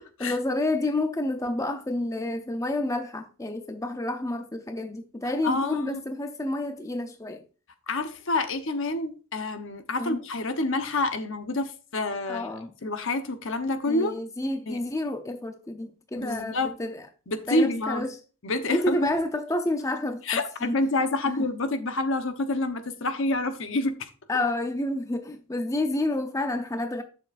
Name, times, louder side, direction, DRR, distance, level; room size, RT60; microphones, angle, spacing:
voice 1, 0.2-7.4 10.0-10.2 12.3-12.7 13.9-17.0 17.5-18.1 18.7-20.4 20.7-20.8 24.3-27.0, left 1 dB, 15° left, 0.6 m, -29 dB
voice 2, 5.4-6.0 7.9-12.5 12.8-14.1 14.7-14.8 16.2-16.8 17.3-18.1 18.4-19.1 20.2-24.1, left 2 dB, 60° left, 1.0 m, -28 dB
11.0 x 6.8 x 2.5 m
head